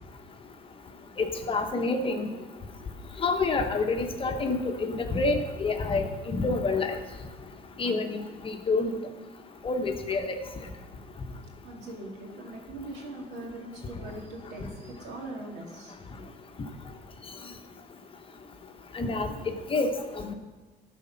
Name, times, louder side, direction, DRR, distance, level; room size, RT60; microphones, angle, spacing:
voice 1, 1.2-2.3 3.2-7.0 7.8-8.9 9.6-10.4 18.9-19.3 19.7-20.3, left 3 dB, 30° left, 5 dB, 1.0 m, -28 dB
voice 2, 11.6-15.9 18.9-19.0, right 2 dB, 90° right, -1 dB, 2.1 m, -41 dB
12.5 x 4.3 x 5.7 m, 1.2 s
cardioid pair, 110°, 17 cm